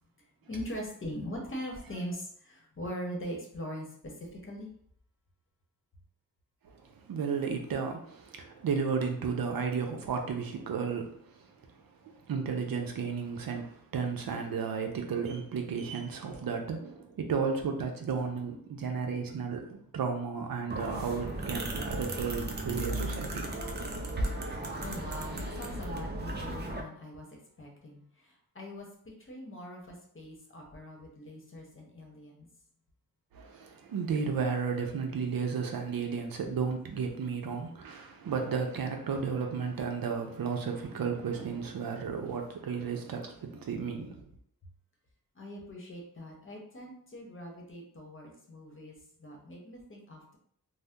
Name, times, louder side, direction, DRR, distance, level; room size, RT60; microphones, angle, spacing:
voice 1, 0.5-4.7 24.4-28.9 29.2-32.5 45.3-50.4, equal, 35° left, 0 dB, 0.9 m, -42 dB
voice 2, 7.1-11.1 12.0-23.5 33.3-44.2, right 5 dB, 75° right, 3 dB, 0.6 m, -33 dB
sound 1, 20.7-26.8, right 1 dB, 30° right, 0.5 m, -35 dB
2.7 x 2.0 x 3.5 m, 0.64 s
wide cardioid pair, 90°, 35 cm